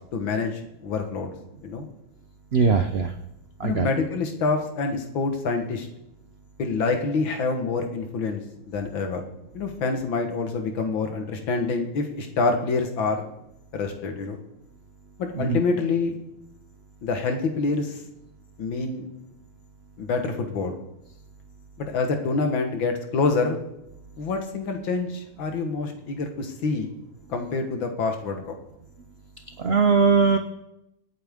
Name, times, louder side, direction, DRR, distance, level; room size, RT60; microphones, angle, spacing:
voice 1, 0.1-1.3 1.6-1.9 3.6-5.9 6.6-9.2 9.5-13.2 13.7-14.4 15.2-16.1 17.0-18.0 18.6-19.1 20.0-20.8 21.8-23.6 24.2-26.9 27.3-28.4, left 4 dB, 75° left, 5 dB, 2.2 m, -26 dB
voice 2, 2.5-3.1 3.6-3.9 15.3-15.6 29.6-30.4, right 5 dB, 65° right, 6 dB, 0.6 m, -20 dB
24.5 x 8.8 x 3.6 m, 0.87 s
omnidirectional pair, 2.1 m